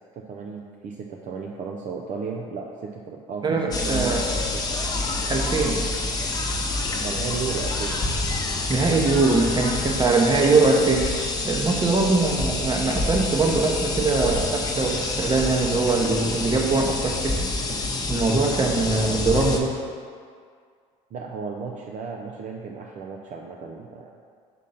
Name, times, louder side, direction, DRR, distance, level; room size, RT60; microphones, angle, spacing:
voice 1, 0.1-4.9 6.9-8.0 21.1-24.1, right 5 dB, 45° right, 0 dB, 0.6 m, -34 dB
voice 2, 3.4-4.2 5.3-5.9 8.7-11.1 11.4-17.4 18.1-19.7, right 3 dB, 25° right, 1 dB, 0.9 m, -22 dB
sound 1, 3.7-19.6, left 2 dB, 20° left, 0.9 m, -27 dB
5.4 x 3.6 x 5.5 m, 2.1 s
supercardioid pair, 85°, 17 cm